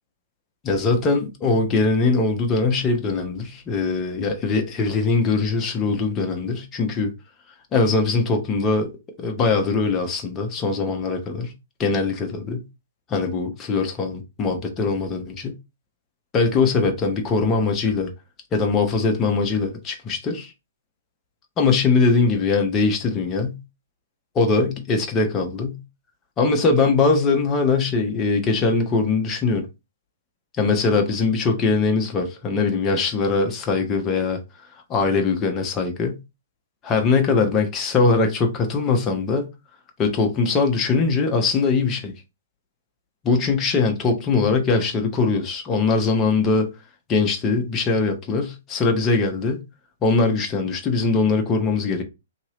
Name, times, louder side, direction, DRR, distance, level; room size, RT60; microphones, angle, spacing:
voice 1, 0.6-7.1 7.7-8.9 9.2-11.5 11.8-12.6 13.1-15.5 16.3-18.1 18.5-20.5 21.6-23.6 24.3-25.8 26.4-29.6 30.6-34.4 34.9-36.2 36.8-39.5 40.0-42.1 43.2-46.7 47.1-49.6 50.0-52.0, left 4 dB, 20° left, 0.8 m, -21 dB
2.9 x 2.9 x 2.9 m
figure-of-eight pair, 115°, 0 cm